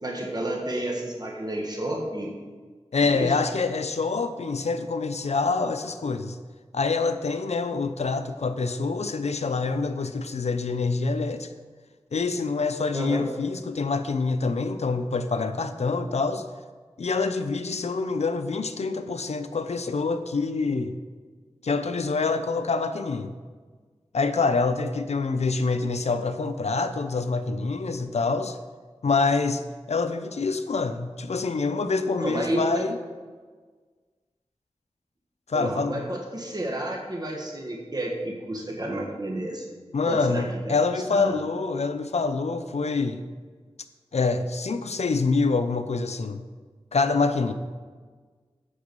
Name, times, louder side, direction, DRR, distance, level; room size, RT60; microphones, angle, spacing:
voice 1, 0.0-2.3 3.1-3.3 12.9-13.3 32.2-32.8 35.5-39.7 40.1-40.8 41.1-41.4, right 1 dB, 35° right, 0 dB, 1.5 m, -30 dB
voice 2, 2.9-6.4 6.7-11.5 12.1-16.4 17.0-21.0 21.6-23.3 24.1-28.6 29.0-29.6 29.9-33.0 35.5-36.1 39.9-43.2 44.1-46.4 46.9-47.5, left 4 dB, 75° left, 10 dB, 0.6 m, -26 dB
8.1 x 6.1 x 5.3 m, 1.5 s
wide cardioid pair, 55°, 11 cm